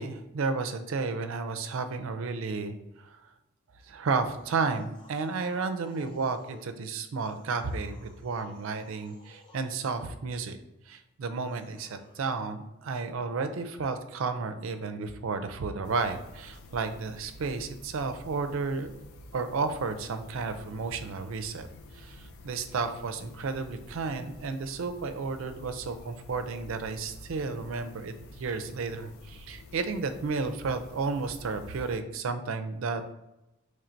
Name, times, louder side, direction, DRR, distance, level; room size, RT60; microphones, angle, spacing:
voice 1, 0.0-3.2 3.9-10.6 10.9-18.9 19.3-21.7 21.9-33.1, right 4 dB, 70° right, 8 dB, 0.4 m, -32 dB
sound 1, 4.2-6.7 7.1-9.8 11.3-12.2, left 1 dB, 20° left, 0.6 m, -56 dB
sound 2, 15.8-32.0, left 1 dB, 75° left, 0.4 m, -49 dB
3.2 x 2.5 x 4.4 m, 0.92 s
head